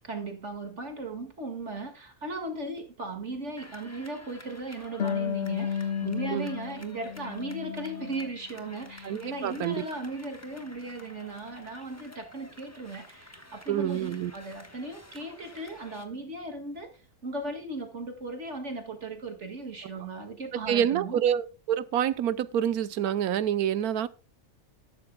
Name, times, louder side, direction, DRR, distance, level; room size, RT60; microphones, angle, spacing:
voice 1, 0.0-21.2, right 2 dB, 50° right, 2.3 m, -37 dB
sound 1, 3.6-16.1, left 1 dB, 10° left, 1.2 m, -50 dB
Harp, 5.0-8.4 8.7-9.8, left 7 dB, 50° left, 1.2 m, -34 dB
voice 2, 9.0-9.8 13.7-14.3 20.7-24.1, right 10 dB, 85° right, 1.3 m, -27 dB
12.5 x 12.5 x 2.2 m
omnidirectional pair, 1.6 m